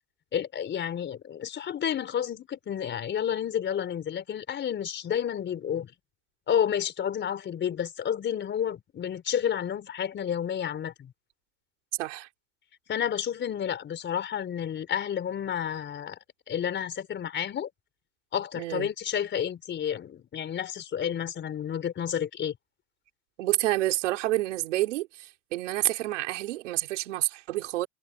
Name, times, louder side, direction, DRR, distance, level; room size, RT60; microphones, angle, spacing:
voice 1, 0.3-5.9 6.5-11.1 12.9-16.2 16.5-17.7 18.3-22.5, left 9 dB, 30° left, 4.4 m, -30 dB
voice 2, 18.6-18.9 23.4-27.9, right 16 dB, 85° right, 5.4 m, -29 dB
supercardioid pair, 120°, 35 cm